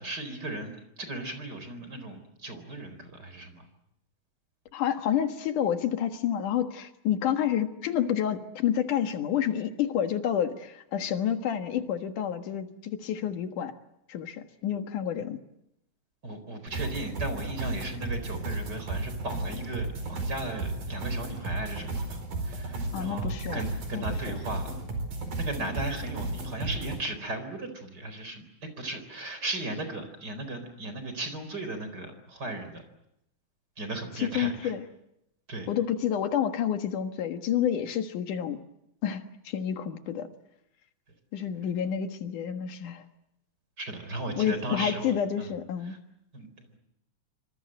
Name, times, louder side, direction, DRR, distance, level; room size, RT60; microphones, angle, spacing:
voice 1, 0.0-3.7 16.2-24.7 25.3-32.8 33.8-34.7 35.5-35.7 43.8-45.1 45.4-45.5 45.9-46.0 46.3-46.8, right 2 dB, 30° right, 9 dB, 4.6 m, -36 dB
voice 2, 4.7-13.7 14.1-15.4 22.9-23.6 23.9-24.4 34.2-34.9 35.7-38.6 39.0-40.3 41.3-43.0 44.4-46.0, left 9 dB, 80° left, 7 dB, 3.1 m, -29 dB
sound 1, 16.7-27.0, right 2 dB, 85° right, 6.1 m, -34 dB
26.5 x 25.5 x 7.8 m, 0.82 s
omnidirectional pair, 3.6 m